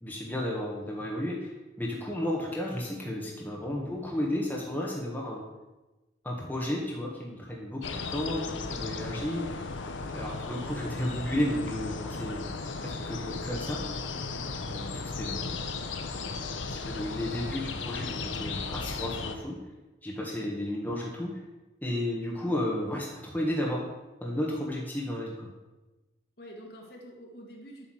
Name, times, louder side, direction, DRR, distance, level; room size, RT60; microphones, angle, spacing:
voice 1, 0.0-1.5 1.8-5.4 6.2-9.6 10.1-12.5 12.8-13.8 14.6-15.5 16.7-19.6 20.0-21.4 21.8-23.8 24.2-25.5, left 1 dB, 10° left, -3 dB, 1.5 m, -33 dB
sound 1, 7.8-19.4, left 4 dB, 90° left, 0.9 m, -36 dB
voice 2, 26.4-27.9, equal, 60° left, -1 dB, 2.1 m, -47 dB
8.5 x 5.7 x 7.8 m, 1.1 s
head